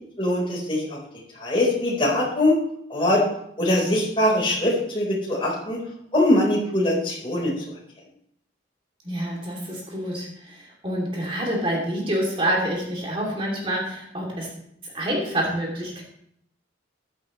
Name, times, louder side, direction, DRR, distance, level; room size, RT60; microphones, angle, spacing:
voice 1, 0.2-1.0 1.3-2.6 2.9-3.2 3.6-5.8 6.1-7.5, left 1 dB, 30° left, -3 dB, 4.4 m, -22 dB
voice 2, 9.0-14.5 14.8-16.0, right 1 dB, 30° right, -2 dB, 3.0 m, -27 dB
14.5 x 11.5 x 3.2 m, 0.72 s
head